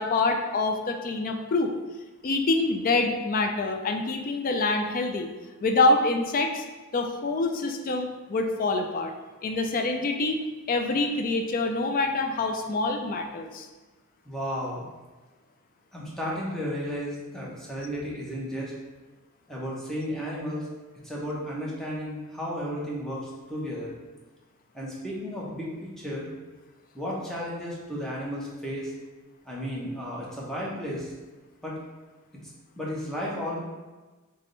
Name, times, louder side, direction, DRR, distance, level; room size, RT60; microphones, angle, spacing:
voice 1, 0.0-1.7 2.2-5.3 5.6-6.6 6.9-9.1 9.4-10.4 10.7-13.7, left 3 dB, 40° left, 5 dB, 0.4 m, -26 dB
voice 2, 14.2-14.8 15.9-18.7 19.5-20.7 21.0-23.9 24.7-25.7 26.0-26.3 26.9-28.9 29.4-31.1 31.6-31.8 32.8-33.6, equal, ahead, -5 dB, 0.9 m, -33 dB
3.5 x 3.2 x 3.9 m, 1.2 s
head